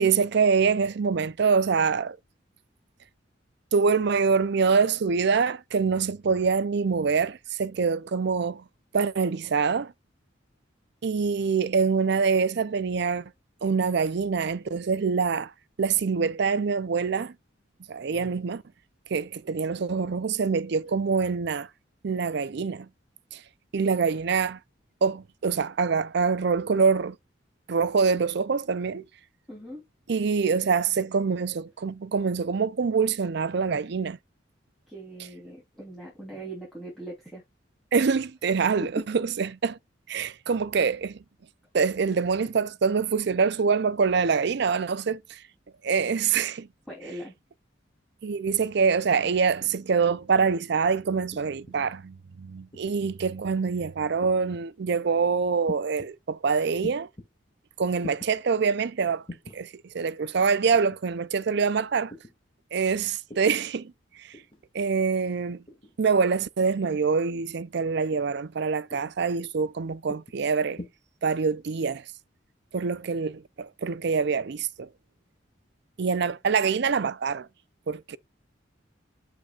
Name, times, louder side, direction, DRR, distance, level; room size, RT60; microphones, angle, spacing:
voice 1, 0.0-2.2 3.7-8.6 8.9-9.9 11.0-13.3 13.6-15.5 15.8-17.3 17.9-18.6 19.1-21.7 22.0-22.9 23.3-23.4 23.7-24.6 25.0-27.2 27.7-29.0 30.1-34.2 37.9-39.8 40.1-41.2 41.7-45.4 45.8-46.7 48.2-57.1 57.8-59.2 59.5-62.1 62.7-63.9 64.2-64.3 64.7-65.6 66.0-70.8 71.2-72.0 72.7-74.9 76.0-77.5 77.9-78.2, right 5 dB, 60° right, 0.5 m, -25 dB
voice 2, 29.5-29.8 34.9-37.4 39.0-39.1 46.9-47.3, right 1 dB, ahead, 3.1 m, -40 dB
sound 1, 51.3-51.8 52.7-53.1 54.2-54.7 55.7-56.1 56.8-57.3 58.0-58.3 59.3-59.6 60.7-61.0 62.1-62.4 63.3-63.6 64.3-64.6 65.7-66.0 66.9-67.2 68.1-68.4 68.9-69.2 70.1-70.4 70.8-70.9, left 1 dB, 25° left, 2.0 m, -43 dB
7.9 x 5.8 x 2.4 m
head